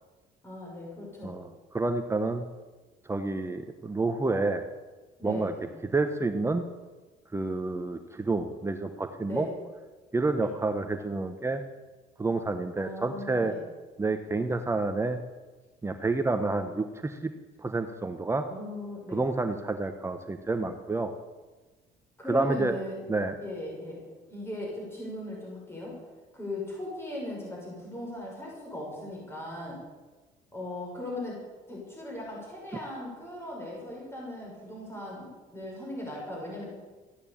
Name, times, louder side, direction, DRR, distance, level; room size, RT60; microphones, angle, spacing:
voice 1, 0.4-1.4 5.2-5.7 9.3-9.5 12.8-13.6 18.5-19.2 22.2-23.0 23.4-24.0 24.3-25.9 26.3-29.8 30.5-31.4 31.7-35.3 35.5-36.7, left 1 dB, 15° left, -3 dB, 6.2 m, -38 dB
voice 2, 1.2-2.4 3.0-4.6 5.2-5.5 5.9-6.6 7.3-9.5 10.1-11.6 12.2-13.5 14.0-15.2 15.8-17.3 17.6-18.5 19.1-21.1 22.3-22.7 23.1-23.3, right 3 dB, 15° right, 6 dB, 1.0 m, -29 dB
14.5 x 10.0 x 8.6 m, 1.3 s
cardioid pair, 110°, 17 cm